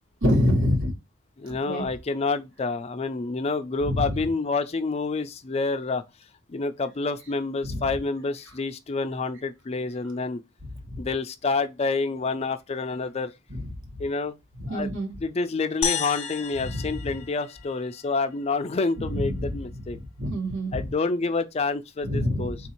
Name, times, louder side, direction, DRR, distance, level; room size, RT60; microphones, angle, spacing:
voice 1, 0.2-0.9 1.5-1.8 3.8-4.1 7.6-7.9 10.7-11.0 13.5-13.7 14.6-15.1 16.6-17.1 19.0-19.6 19.9-20.9 22.0-22.7, left 1 dB, 60° right, 1.3 m, -27 dB
voice 2, 1.4-6.0 6.5-10.4 11.0-13.3 14.0-14.4 14.7-14.9 15.2-20.0 20.7-22.6, left 3 dB, 30° left, 0.4 m, -28 dB
sound 1, 15.8-18.3, left 8 dB, 80° left, 0.5 m, -32 dB
3.8 x 2.6 x 4.3 m
head